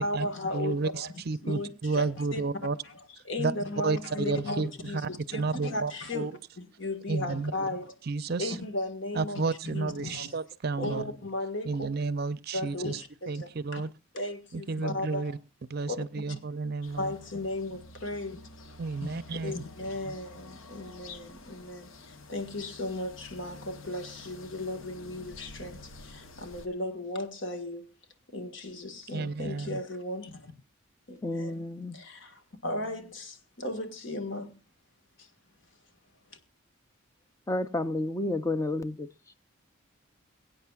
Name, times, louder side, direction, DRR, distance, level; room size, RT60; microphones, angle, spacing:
voice 1, 0.0-1.1 1.4-2.4 2.8-3.0 3.2-8.0 8.4-10.3 10.8-11.9 12.5-13.8 14.1-15.3 15.9-16.0 16.3-16.4 17.0-18.4 19.0-27.9 28.3-30.5 31.1-31.6 31.9-32.3 32.6-34.6 35.2-35.3 36.3-36.4, left 2 dB, 60° left, 1.7 m, -36 dB
voice 2, 0.5-2.8 3.4-3.5 3.8-6.3 7.1-7.5 8.1-8.6 9.1-11.0 11.6-13.0 13.3-13.9 14.5-15.4 15.7-17.1 18.8-19.5 20.0-20.1 29.1-29.8, right 4 dB, 50° right, 0.5 m, -31 dB
sound 1, 16.8-26.7, left 3 dB, 80° left, 1.1 m, -48 dB
voice 3, 31.2-32.0 37.5-39.4, left 2 dB, 15° left, 0.5 m, -31 dB
22.5 x 8.9 x 2.4 m
head